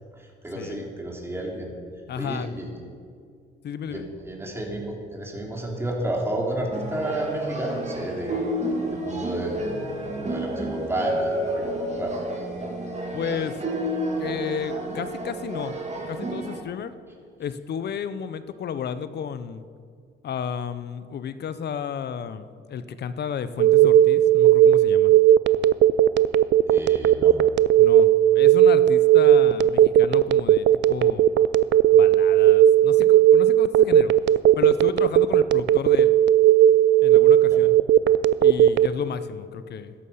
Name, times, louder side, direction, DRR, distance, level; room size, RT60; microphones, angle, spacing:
voice 1, 0.2-1.7 2.2-2.7 3.9-8.4 8.9-9.6 10.0-12.1 26.7-27.3 37.5-37.6, right 1 dB, 10° right, -1 dB, 3.0 m, -31 dB
voice 2, 2.1-2.5 3.6-4.0 13.1-13.6 14.2-15.7 16.1-16.9 17.4-19.6 20.2-25.1 27.8-31.3 31.9-34.1 34.6-36.1 37.0-37.8 38.4-39.9, left 7 dB, 55° left, 14 dB, 0.7 m, -32 dB
sound 1, 6.7-16.6, right 1 dB, 35° right, 2.5 m, -30 dB
Telephone, 23.6-38.9, right 11 dB, 65° right, 0.4 m, -16 dB
13.0 x 11.0 x 5.6 m, 2.2 s
cardioid pair, 90°, 20 cm